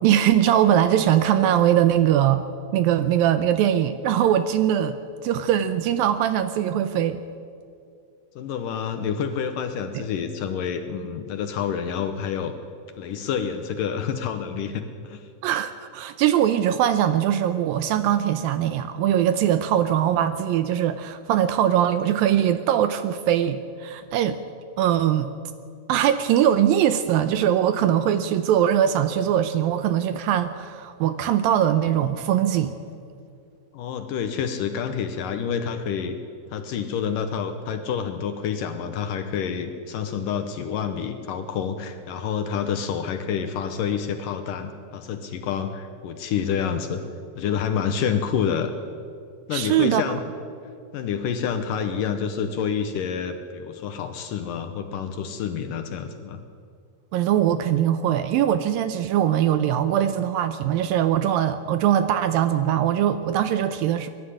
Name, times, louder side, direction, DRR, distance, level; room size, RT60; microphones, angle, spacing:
voice 1, 0.0-2.4 2.7-5.0 5.2-7.2 9.9-10.0 15.4-24.4 24.8-25.3 25.9-32.7 49.5-50.0 57.1-64.1, right 10 dB, 80° right, 11 dB, 2.2 m, -21 dB
voice 2, 8.4-12.5 13.0-15.3 33.7-36.2 36.5-47.0 47.4-48.7 49.5-50.2 50.9-56.4, left 7 dB, 70° left, 8 dB, 2.2 m, -28 dB
22.0 x 12.0 x 10.0 m, 2.3 s
omnidirectional pair, 4.6 m